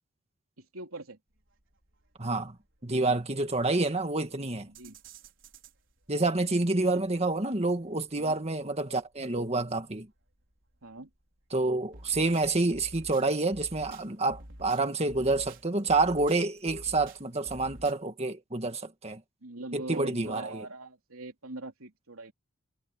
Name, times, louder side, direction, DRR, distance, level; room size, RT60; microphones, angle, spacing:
voice 1, 0.6-1.2 4.7-5.0 6.8-7.0 8.2-8.4 10.8-11.1 19.4-22.3, right 2 dB, 90° right, 3.3 m, -41 dB
sound 1, 1.3-17.9, right 1 dB, 60° right, 5.1 m, -50 dB
voice 2, 2.2-2.5 2.8-4.7 6.1-10.1 11.5-19.2 19.7-20.7, right 2 dB, 30° right, 1.8 m, -28 dB
head